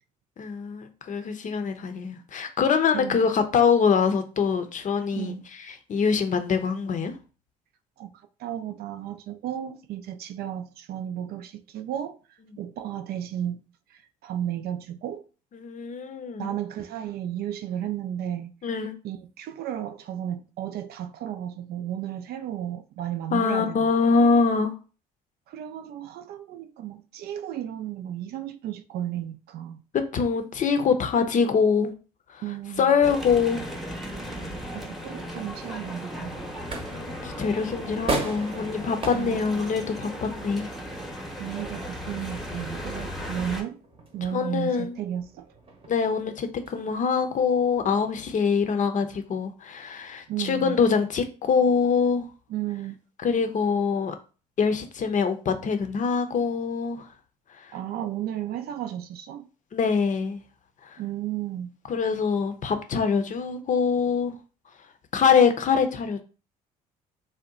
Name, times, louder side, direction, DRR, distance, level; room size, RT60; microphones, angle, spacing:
voice 1, 0.4-5.3 5.9-7.1 15.5-16.5 18.6-19.0 23.3-24.7 30.1-31.9 32.3-32.4 32.8-33.6 36.9-40.7 43.2-43.4 44.3-45.0 45.9-52.3 53.2-54.1 54.6-57.1 57.6-57.7 59.7-60.4 60.8-61.0 61.9-64.3 65.1-66.2, left 5 dB, 40° left, 0.6 m, -24 dB
voice 2, 2.9-3.2 5.1-5.4 8.0-8.1 8.4-12.2 12.6-13.6 13.9-15.2 16.4-18.5 19.0-23.9 25.5-29.8 32.4-33.0 34.7-36.6 39.1-39.4 41.4-43.8 44.1-45.5 50.3-50.8 52.5-53.0 57.7-59.4 61.0-61.7, right 11 dB, 55° right, 0.4 m, -33 dB
sound 1, 33.0-43.6, equal, ahead, 0.9 m, -36 dB
sound 2, 36.2-48.2, right 2 dB, 30° right, 0.8 m, -39 dB
2.7 x 2.1 x 3.7 m
hypercardioid pair, 55°, 19 cm